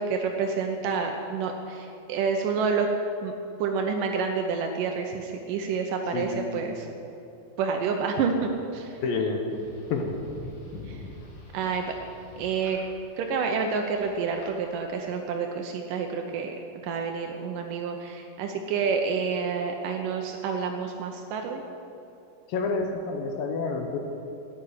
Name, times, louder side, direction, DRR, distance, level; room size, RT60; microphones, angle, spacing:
voice 1, 0.0-2.9 3.2-3.3 3.6-6.9 7.6-9.0 10.9-11.0 11.5-11.9 12.4-12.8 13.2-16.6 16.8-21.6, right 5 dB, 80° right, 3 dB, 1.9 m, -28 dB
voice 2, 6.1-6.6 9.0-9.6 9.9-10.1 22.5-24.0, left 4 dB, 70° left, 4 dB, 2.3 m, -29 dB
sound 1, 9.5-14.5, left 2 dB, 50° left, 3.5 m, -45 dB
12.5 x 8.8 x 9.6 m, 2.9 s
omnidirectional pair, 4.9 m